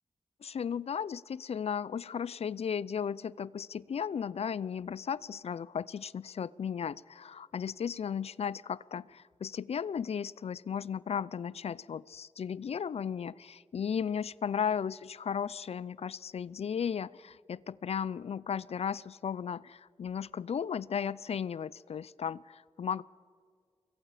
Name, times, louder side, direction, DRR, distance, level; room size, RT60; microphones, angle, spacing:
voice 1, 0.4-23.0, left 7 dB, 65° left, 21 dB, 0.5 m, -35 dB
28.0 x 22.5 x 5.0 m, 2.1 s
cardioid pair, 65°, 11 cm